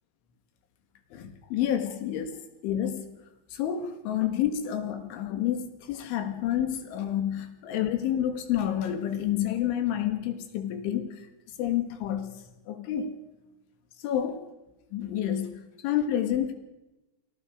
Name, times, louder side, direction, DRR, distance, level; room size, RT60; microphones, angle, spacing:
voice 1, 1.1-3.1 3.5-11.3 11.6-12.3 12.7-13.2 14.0-14.4 14.9-16.5, left 10 dB, 75° left, 4.1 m, -29 dB
28.0 x 19.0 x 5.0 m
omnidirectional pair, 5.6 m